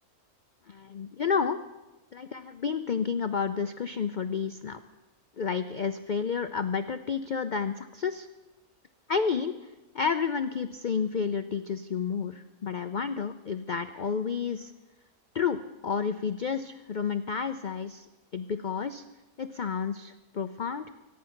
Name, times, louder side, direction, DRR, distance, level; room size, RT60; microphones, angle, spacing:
voice 1, 0.7-1.6 2.1-4.8 5.4-8.3 9.1-9.5 9.9-14.7 15.3-18.1 18.3-19.0 19.4-20.8, left 6 dB, 70° left, 10 dB, 0.4 m, -30 dB
24.5 x 9.6 x 5.8 m, 1.1 s
omnidirectional pair, 1.6 m